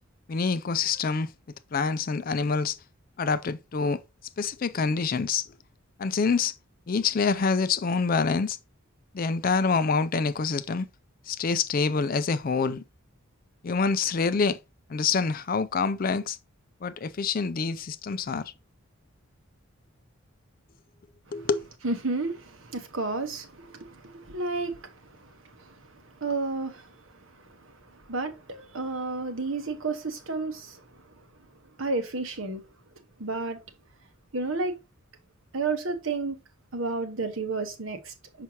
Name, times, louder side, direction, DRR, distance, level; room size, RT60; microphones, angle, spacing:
voice 1, 0.3-1.3 1.7-2.8 3.2-4.0 4.4-5.5 6.0-6.5 6.9-8.6 9.1-10.9 11.3-12.8 13.6-14.6 14.9-16.4 16.8-18.5 21.3-21.7, left 5 dB, 40° left, 0.4 m, -26 dB
voice 2, 21.8-27.0 27.4-27.7 28.1-30.8 31.8-32.6 33.2-33.6 34.3-34.7 35.5-36.4 36.7-38.4, right 3 dB, 65° right, 1.1 m, -32 dB
6.0 x 5.6 x 2.8 m
head